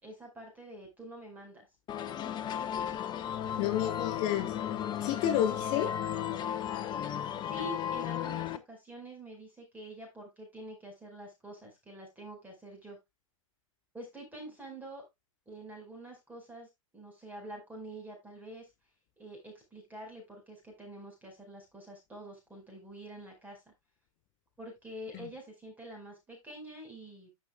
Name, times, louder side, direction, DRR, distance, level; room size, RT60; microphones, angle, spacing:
voice 1, 0.0-1.7 7.4-13.0 13.9-15.0 15.5-16.7 16.9-18.7 19.2-23.6 24.6-27.3, right 1 dB, 10° right, 4.8 m, -47 dB
sound 1, 1.9-8.6, left 9 dB, 25° left, 1.0 m, -35 dB
voice 2, 3.6-4.5 5.0-5.9 25.1-25.3, left 11 dB, 45° left, 6.4 m, -30 dB
14.0 x 6.5 x 2.3 m
hypercardioid pair, 115°, 18 cm